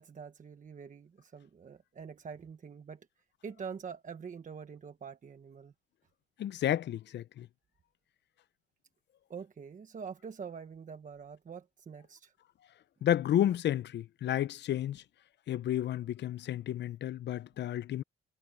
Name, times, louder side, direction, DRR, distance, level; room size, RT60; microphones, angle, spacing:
voice 1, 0.0-3.1 3.4-5.7 9.3-12.3, right 6 dB, 40° right, 1.3 m, -45 dB
voice 2, 6.4-7.5 13.0-15.0 15.5-18.0, left 11 dB, 60° left, 0.6 m, -31 dB
cardioid pair, 90°, 20 cm